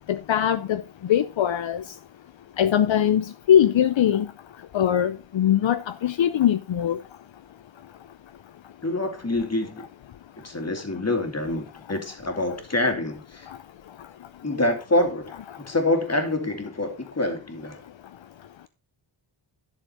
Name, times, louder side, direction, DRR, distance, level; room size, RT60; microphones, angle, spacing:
voice 1, 0.1-0.8 1.1-1.8 2.6-4.3 4.7-7.0, left 10 dB, 70° left, 0.7 m, -21 dB
voice 2, 8.8-9.9 10.4-13.5 14.4-17.8, left 1 dB, 30° left, 2.5 m, -26 dB
11.5 x 6.7 x 4.3 m
wide cardioid pair, 90°, 48 cm